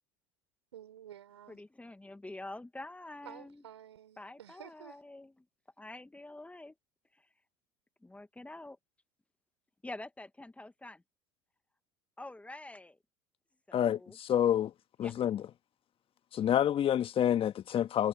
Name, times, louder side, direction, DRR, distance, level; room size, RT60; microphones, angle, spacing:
voice 1, 0.7-1.6 3.2-5.0, right 11 dB, 85° right, 5.6 m, -51 dB
voice 2, 1.5-3.6 4.2-5.3 5.8-6.7 8.0-8.8 9.8-11.0 12.2-13.0 13.7-14.2 15.0-15.1, left 2 dB, 10° left, 1.8 m, -46 dB
voice 3, 13.7-14.7 15.0-15.5 16.3-18.1, left 10 dB, 40° left, 1.6 m, -28 dB
hypercardioid pair, 70°, 14 cm